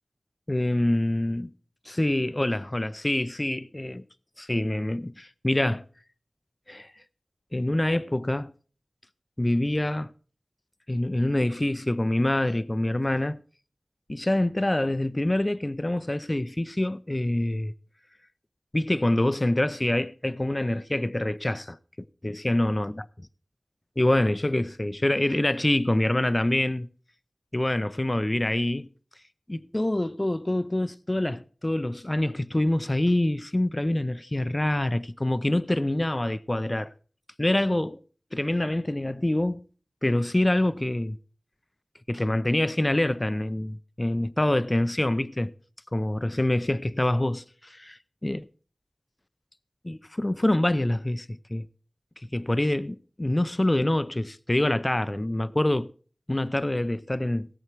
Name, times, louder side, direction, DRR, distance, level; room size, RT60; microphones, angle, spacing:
voice 1, 0.5-1.5 1.9-4.0 4.4-5.8 6.7-6.9 7.5-8.5 9.4-10.1 10.9-13.4 14.1-17.7 18.7-21.8 22.2-23.1 24.0-26.9 27.5-28.9 29.5-36.9 37.4-38.0 38.3-39.6 40.0-41.2 42.1-45.5 45.9-48.5 49.8-51.6 52.3-55.9 56.3-57.5, left 1 dB, 30° left, 0.5 m, -26 dB
17.5 x 7.8 x 4.6 m
wide cardioid pair, 60°, 0 cm